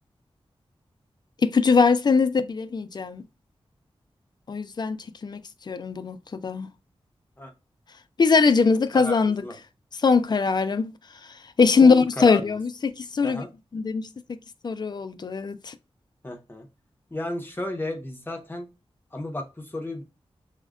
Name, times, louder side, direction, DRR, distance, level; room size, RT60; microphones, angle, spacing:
voice 1, 1.4-3.2 4.5-5.4 5.7-6.2 6.4-6.7 8.2-9.4 10.0-10.9 11.6-12.7 13.0-13.4 13.7-14.4 14.6-15.7, left 4 dB, 45° left, 0.3 m, -21 dB
voice 2, 8.9-9.6 11.8-12.6 13.2-13.5 16.2-16.7 17.1-18.7 19.1-20.0, left 1 dB, 20° left, 0.7 m, -33 dB
6.0 x 2.1 x 2.4 m
wide cardioid pair, 105°, 10 cm